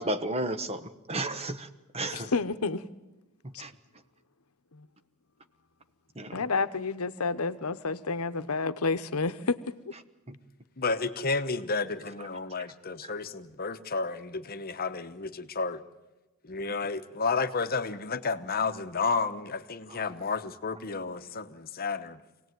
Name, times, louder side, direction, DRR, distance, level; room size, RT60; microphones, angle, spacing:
voice 1, 0.0-1.7 1.9-2.3 3.4-3.7 6.1-6.4 10.3-10.4 13.0-13.1 19.9-20.0, right 1 dB, 30° right, 1.2 m, -33 dB
voice 2, 2.1-2.8 4.7-4.9 6.3-9.9, left 4 dB, 80° left, 0.9 m, -30 dB
voice 3, 10.8-15.8 16.4-22.2, left 4 dB, 45° left, 1.0 m, -31 dB
25.5 x 18.0 x 9.3 m
head